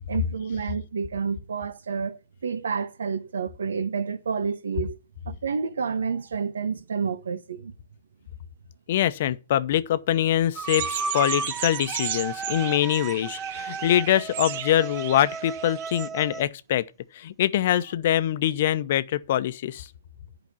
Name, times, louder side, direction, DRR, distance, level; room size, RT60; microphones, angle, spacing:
voice 1, 0.1-5.0 5.3-7.7, right 5 dB, 80° right, 1.1 m, -29 dB
voice 2, 8.9-16.8 17.1-19.9, left 12 dB, 55° left, 0.7 m, -24 dB
sound 1, 10.6-16.5, right 4 dB, 15° right, 0.4 m, -34 dB
sound 2, 10.7-16.1, right 11 dB, 50° right, 1.0 m, -35 dB
11.0 x 5.1 x 5.7 m
hypercardioid pair, 125°, 0 cm